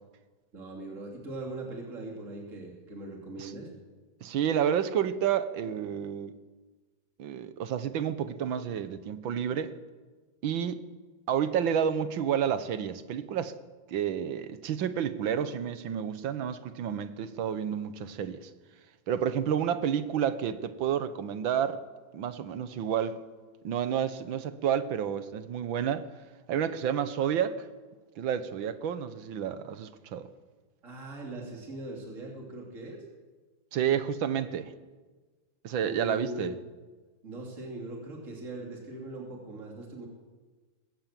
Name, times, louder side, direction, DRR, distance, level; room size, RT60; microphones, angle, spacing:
voice 1, 0.5-3.7 30.8-33.0 35.8-36.6 37.2-40.1, right 2 dB, 40° right, 3.4 m, -40 dB
voice 2, 4.2-6.3 7.2-9.7 10.4-10.8 11.3-13.5 13.9-18.5 19.1-21.8 22.1-23.2 23.6-26.0 26.5-27.7 28.2-30.3 33.7-34.7 35.6-36.5, right 8 dB, 85° right, 1.8 m, -30 dB
20.5 x 17.0 x 7.5 m
omnidirectional pair, 2.1 m